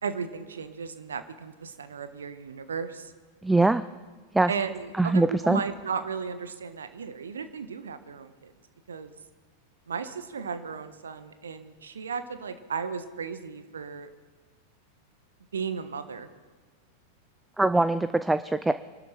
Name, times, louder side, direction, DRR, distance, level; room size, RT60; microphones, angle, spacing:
voice 1, 0.0-3.1 4.5-8.5 8.9-9.1 9.9-14.1 15.5-16.3, right 6 dB, 70° right, 10 dB, 1.3 m, -35 dB
voice 2, 3.4-3.8 4.3-4.5 5.0-5.6 17.6-18.7, right 2 dB, 5° right, 13 dB, 0.4 m, -22 dB
25.5 x 12.5 x 4.4 m, 1.4 s
figure-of-eight pair, 90°, 0 cm